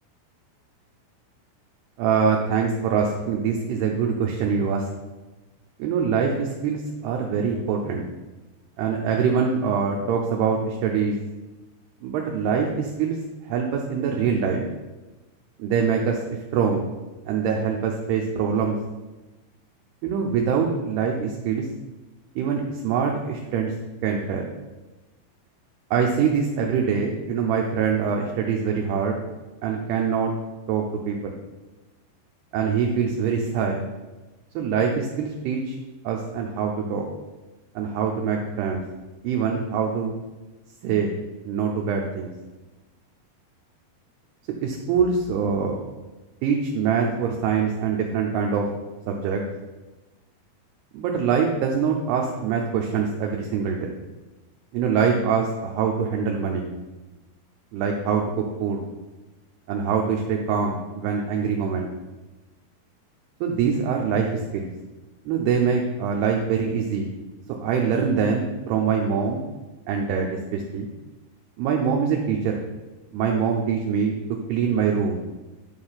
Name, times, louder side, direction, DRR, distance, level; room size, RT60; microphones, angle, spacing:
voice 1, 2.0-4.9 5.8-8.0 8.8-11.2 12.0-13.2 13.4-14.6 15.6-16.2 16.5-16.9 17.3-18.8 20.0-21.7 22.4-23.7 24.0-24.5 25.9-29.2 29.6-30.3 30.7-31.3 32.5-33.8 34.6-35.8 36.0-37.0 37.8-38.8 39.2-40.1 40.8-41.1 41.5-42.3 44.6-45.8 46.4-48.7 49.1-49.4 50.9-53.9 54.7-56.7 57.7-58.9 59.7-61.9 63.4-64.7 65.3-67.1 67.6-69.4 69.9-70.9 71.6-72.6 73.1-74.2 74.5-75.2, right 6 dB, 75° right, 1 dB, 2.6 m, -24 dB
9.7 x 4.9 x 5.6 m, 1.1 s
omnidirectional pair, 5.2 m